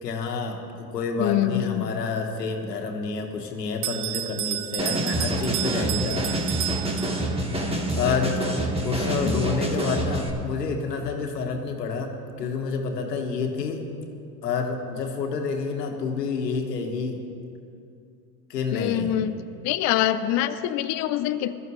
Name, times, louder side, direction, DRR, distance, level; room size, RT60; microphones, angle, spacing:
voice 1, 0.0-6.8 7.9-8.4 8.8-13.9 14.4-17.2 18.5-19.2, left 4 dB, 90° left, 3 dB, 1.8 m, -29 dB
voice 2, 1.2-1.9 9.2-9.4 18.7-19.3 19.6-21.6, left 12 dB, 35° left, 9 dB, 0.5 m, -25 dB
Bell, 3.8-7.6, right 14 dB, 70° right, 0.8 m, -31 dB
sound 1, 4.8-10.3, right 1 dB, 10° right, 1.6 m, -27 dB
19.0 x 13.5 x 3.2 m, 2.5 s
hypercardioid pair, 100°, 48 cm